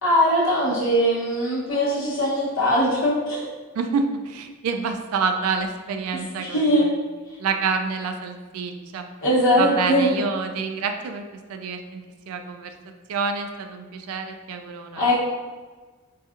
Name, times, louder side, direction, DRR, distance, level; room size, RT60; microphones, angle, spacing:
voice 1, 0.0-3.4 6.1-6.8 9.2-10.1 15.0-15.1, equal, 60° left, -6 dB, 1.0 m, -21 dB
voice 2, 3.7-6.9 7.4-9.1 9.6-11.2 11.5-12.7 13.1-15.1, right 5 dB, 70° right, 6 dB, 0.3 m, -28 dB
4.0 x 2.4 x 2.5 m, 1.4 s
head